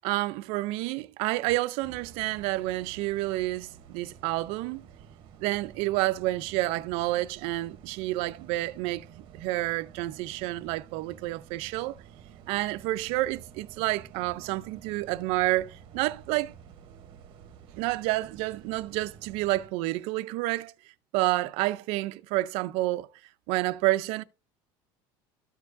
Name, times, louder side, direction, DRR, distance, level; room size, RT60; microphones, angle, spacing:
voice 1, 0.0-4.8 5.4-12.0 12.5-16.5 17.8-20.7 21.1-23.1 23.5-24.2, right 18 dB, 70° right, 0.5 m, -29 dB
sound 1, 1.8-19.7, right 8 dB, 50° right, 1.1 m, -51 dB
13.5 x 4.6 x 2.6 m
cardioid pair, 150°, 11 cm